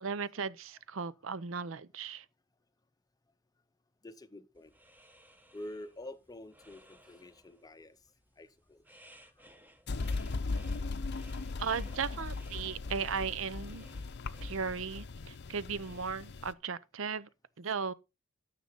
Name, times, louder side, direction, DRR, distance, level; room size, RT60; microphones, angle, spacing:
voice 1, 0.0-2.2 11.6-13.9 14.4-17.3 17.6-17.9, right 6 dB, 70° right, 0.6 m, -36 dB
voice 2, 4.0-4.7 5.5-8.0 8.4-8.9 11.1-11.4 13.7-13.8, left 1 dB, 20° left, 0.7 m, -48 dB
sound 1, 4.5-16.0, equal, 10° right, 1.0 m, -61 dB
sound 2, 9.9-16.5, left 3 dB, 55° left, 0.6 m, -38 dB
12.5 x 6.7 x 4.0 m
head